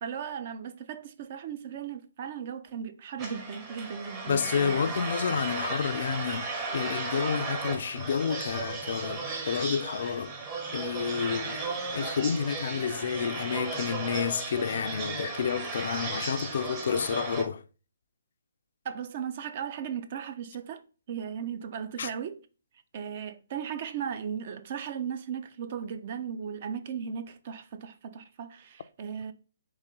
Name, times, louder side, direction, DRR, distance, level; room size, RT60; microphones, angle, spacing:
voice 1, 0.0-4.8 18.8-20.8 21.1-22.4 22.9-29.3, right 7 dB, 40° right, 0.4 m, -37 dB
sound 1, 3.2-17.4, right 4 dB, 25° right, 0.9 m, -35 dB
voice 2, 4.3-6.5 6.7-10.3 10.7-11.6 11.9-17.6 22.0-22.1, left 7 dB, 55° left, 0.3 m, -30 dB
4.0 x 3.0 x 3.6 m
figure-of-eight pair, 140°, 0 cm